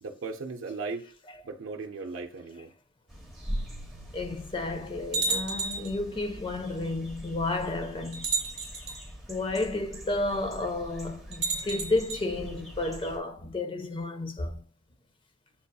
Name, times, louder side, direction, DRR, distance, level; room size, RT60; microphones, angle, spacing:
voice 1, 0.0-1.0 1.4-2.7, right 4 dB, 90° right, 0.5 m, -37 dB
Afternoon Birds, 3.1-13.2, equal, ahead, 1.0 m, -42 dB
sound 1, 3.5-3.6 4.3-4.4 5.1-6.0 7.1-7.2 8.1-9.0 11.3-12.2, right 3 dB, 35° right, 1.4 m, -31 dB
voice 2, 4.1-8.3 9.3-14.6, left 2 dB, 25° left, 0.5 m, -32 dB
7.1 x 2.7 x 2.2 m
head